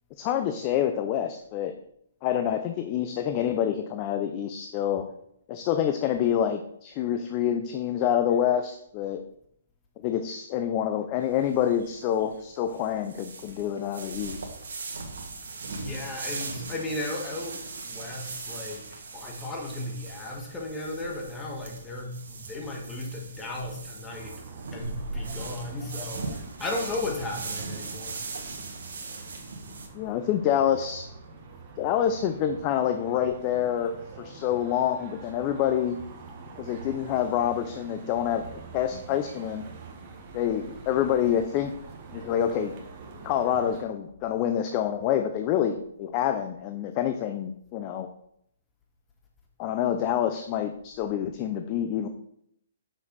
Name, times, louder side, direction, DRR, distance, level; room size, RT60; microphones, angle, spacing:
voice 1, 0.2-1.7 2.2-5.1 5.5-9.2 10.0-14.4 29.9-31.0 31.8-36.0 36.6-38.4 38.7-39.6 40.3-41.7 42.1-42.7 43.2-48.1 49.6-52.1, left 10 dB, 30° left, 0.5 m, -27 dB
sound 1, 11.2-29.9, right 3 dB, 75° right, 1.5 m, -39 dB
voice 2, 15.8-17.6 17.8-24.4 24.7-28.6, left 2 dB, 15° left, 1.4 m, -35 dB
sound 2, 24.1-43.8, right 4 dB, 35° right, 1.3 m, -45 dB
6.4 x 6.0 x 4.1 m
hypercardioid pair, 155°, 0 cm